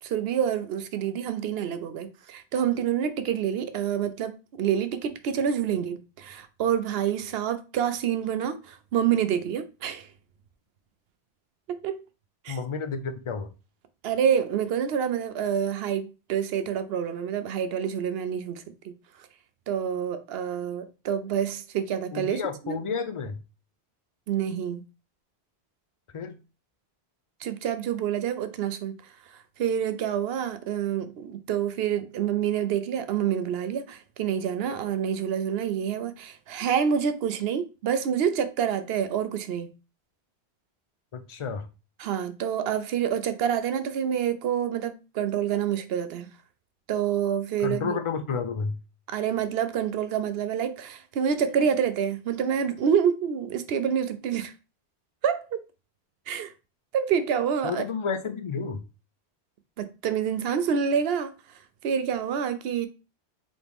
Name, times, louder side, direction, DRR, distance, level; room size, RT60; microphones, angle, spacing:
voice 1, 0.0-10.1 11.7-12.0 12.4-12.6 14.0-18.9 19.7-22.8 24.3-24.8 27.4-29.0 29.6-39.7 42.0-46.3 46.9-47.9 49.1-54.5 55.2-55.6 56.3-56.5 56.9-57.8 59.8-61.3 61.8-62.9, right 8 dB, 70° right, 0.8 m, -27 dB
voice 2, 12.5-13.5 22.1-23.4 26.1-26.4 41.1-41.7 47.6-48.8 57.6-58.8, left 5 dB, 55° left, 0.3 m, -31 dB
4.2 x 2.9 x 3.4 m
omnidirectional pair, 1.1 m